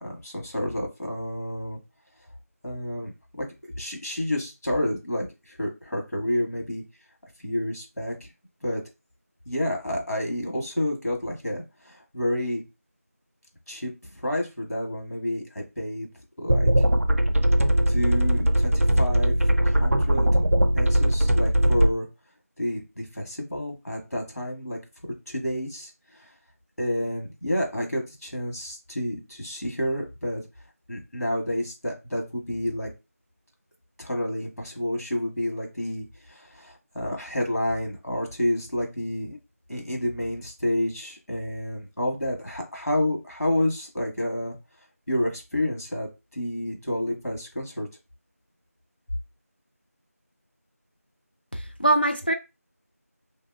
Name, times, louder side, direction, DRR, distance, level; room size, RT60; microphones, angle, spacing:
voice 1, 0.0-1.8 2.6-3.5 3.8-6.8 7.4-8.3 8.6-8.8 9.5-12.6 13.7-16.1 16.4-16.9 17.9-19.3 19.6-20.3 20.7-22.1 22.6-24.8 25.3-26.3 26.8-30.4 30.9-32.9 34.0-39.4 39.7-44.5 45.1-47.9, left 1 dB, 80° left, 1.4 m, -29 dB
sound 1, 16.5-21.9, right 1 dB, 60° right, 0.4 m, -20 dB
voice 2, 51.5-52.3, right 1 dB, 40° left, 0.4 m, -23 dB
2.7 x 2.7 x 2.6 m
figure-of-eight pair, 175°, 9 cm